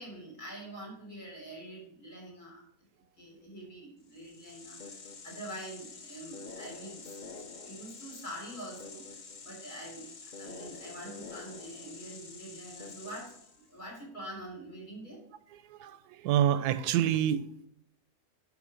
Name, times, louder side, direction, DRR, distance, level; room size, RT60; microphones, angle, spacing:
voice 1, 0.0-2.6 3.2-7.4 7.6-9.1 9.4-10.1 10.4-15.2, right 1 dB, 80° left, -2 dB, 4.4 m, -45 dB
sound 1, 4.1-13.7, left 4 dB, 40° left, 0.7 m, -47 dB
voice 2, 15.5-17.5, right 10 dB, 90° right, 15 dB, 1.1 m, -28 dB
11.0 x 4.9 x 5.1 m, 0.73 s
omnidirectional pair, 1.6 m